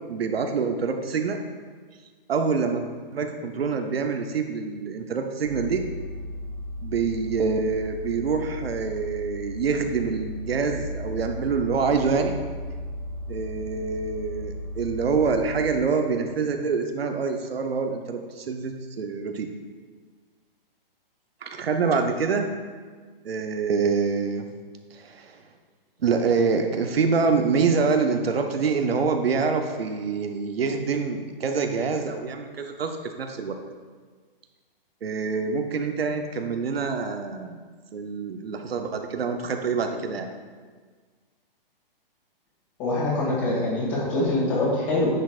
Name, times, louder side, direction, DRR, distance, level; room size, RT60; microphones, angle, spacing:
voice 1, 0.1-1.4 2.3-5.8 6.8-12.4 13.3-19.5 21.4-22.5 23.2-24.4 24.9-25.4 26.0-33.6 35.0-37.6 37.9-40.3, right 5 dB, 90° right, 4 dB, 0.8 m, -26 dB
sound 1, 5.4-15.9, left 1 dB, 65° left, 1.6 m, -36 dB
voice 2, 42.8-45.1, left 2 dB, 35° left, -6 dB, 2.2 m, -24 dB
9.9 x 6.4 x 2.5 m, 1.5 s
hypercardioid pair, 150°, 29 cm